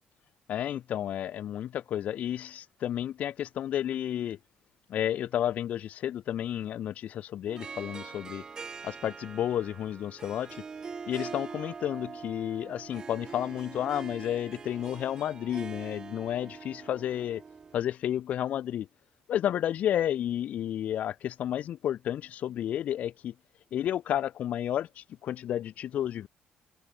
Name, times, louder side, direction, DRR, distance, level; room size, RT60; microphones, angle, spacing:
voice 1, 0.5-4.4 4.9-8.4 8.8-10.6 11.1-17.4 17.7-18.9 19.3-23.3 23.7-26.3, left 11 dB, 55° left, 1.9 m, -31 dB
Harp, 7.5-17.8, right 5 dB, 25° right, 0.8 m, -43 dB
cardioid pair, 165°, 3 cm